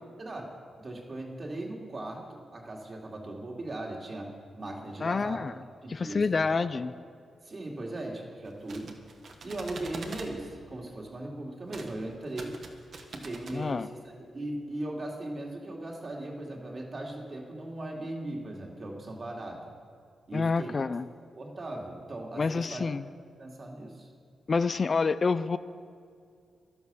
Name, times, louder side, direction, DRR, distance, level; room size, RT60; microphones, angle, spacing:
voice 1, 0.2-5.4 5.8-6.8 7.4-9.0 9.4-12.6 13.1-13.9 14.3-19.7 20.3-20.8 21.4-22.8 23.4-24.1, right 1 dB, 40° right, 0 dB, 2.3 m, -38 dB
voice 2, 5.0-5.5 5.9-6.9 13.5-13.9 20.3-21.1 22.4-23.0 24.5-25.6, left 4 dB, 40° left, 13 dB, 0.4 m, -28 dB
sound 1, 8.4-10.3 11.7-11.9 12.2-13.6, right 3 dB, 60° right, 1.4 m, -44 dB
11.5 x 11.0 x 6.9 m, 2.3 s
cardioid pair, 85°, 0 cm